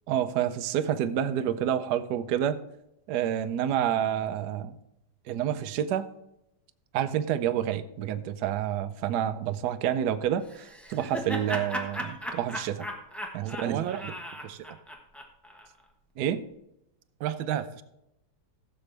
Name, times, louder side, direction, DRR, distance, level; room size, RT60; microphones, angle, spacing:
voice 1, 0.1-2.6 3.1-4.8 5.3-6.1 6.9-12.9 13.3-13.9 16.2-16.4, right 10 dB, 65° right, 1.1 m, -28 dB
Laughter, 10.5-15.7, equal, ahead, 0.7 m, -37 dB
voice 2, 13.4-14.0 14.4-14.8 17.2-17.8, right 10 dB, 85° right, 1.5 m, -32 dB
15.5 x 7.1 x 3.3 m
omnidirectional pair, 2.1 m